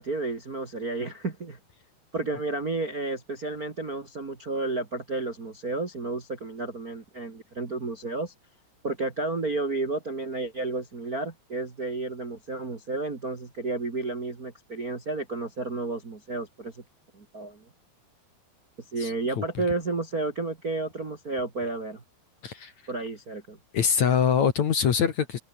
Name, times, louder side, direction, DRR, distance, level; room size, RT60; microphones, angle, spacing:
voice 1, 0.0-1.6 2.1-8.3 8.8-16.8 17.1-17.6 18.9-22.0 22.9-23.6, right 3 dB, 30° right, 1.7 m, -31 dB
voice 2, 19.0-19.4 22.4-22.7 23.7-25.4, left 7 dB, 50° left, 2.7 m, -24 dB
omnidirectional pair, 4.7 m